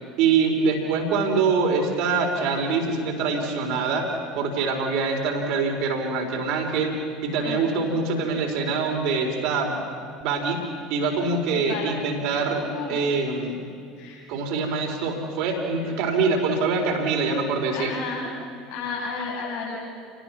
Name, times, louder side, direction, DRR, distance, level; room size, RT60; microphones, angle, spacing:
voice 1, 0.2-4.1 4.4-6.9 7.2-9.8 10.2-10.6 10.9-12.6 12.9-13.6 14.3-17.9, right 4 dB, 55° right, 2 dB, 4.1 m, -24 dB
voice 2, 7.4-8.0 11.6-13.0 14.0-14.3 15.4-15.5 15.8-15.9 16.8-16.9 17.7-18.3 18.7-19.8, left 4 dB, 60° left, -4 dB, 7.8 m, -34 dB
29.0 x 19.0 x 6.0 m, 2.4 s
figure-of-eight pair, 65°, 0 cm